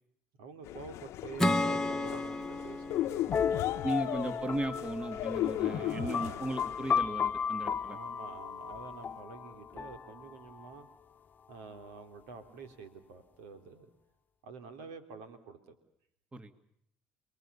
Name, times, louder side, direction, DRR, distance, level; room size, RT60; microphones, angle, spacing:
voice 1, 0.4-4.2 5.6-6.4 6.9-7.0 7.8-10.9 11.5-13.9 14.4-15.7, right 4 dB, 80° right, 8 dB, 3.6 m, -48 dB
sound 1, 0.6-7.0, left 14 dB, 65° left, 0.9 m, -36 dB
Acoustic guitar / Strum, 1.4-4.8, left 1 dB, 10° left, 1.5 m, -33 dB
sound 2, 3.3-10.9, left 7 dB, 35° left, 1.1 m, -35 dB
voice 2, 3.8-8.0 16.3-16.5, right 1 dB, 20° right, 11 dB, 2.2 m, -36 dB
29.5 x 21.5 x 7.0 m, 0.71 s
supercardioid pair, 75°, 5 cm